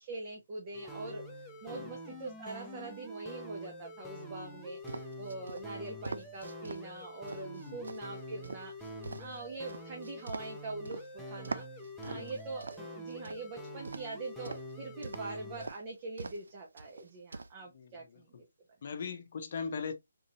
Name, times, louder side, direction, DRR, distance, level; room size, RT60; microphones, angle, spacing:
voice 1, 0.0-11.7 12.0-18.5, right 3 dB, 30° right, 0.8 m, -43 dB
sound 1, 0.7-15.7, equal, 5° left, 0.7 m, -46 dB
sound 2, 4.9-6.8 7.3-11.0 11.4-13.4 13.8-14.7 15.0-15.3 15.6-15.8 16.2-16.5 16.8-17.5, right 3 dB, 70° right, 0.4 m, -43 dB
voice 2, 7.7-8.0 12.1-12.3 17.7-18.4 18.8-19.9, left 5 dB, 45° left, 0.7 m, -40 dB
3.8 x 2.7 x 2.8 m
figure-of-eight pair, 155°, 0 cm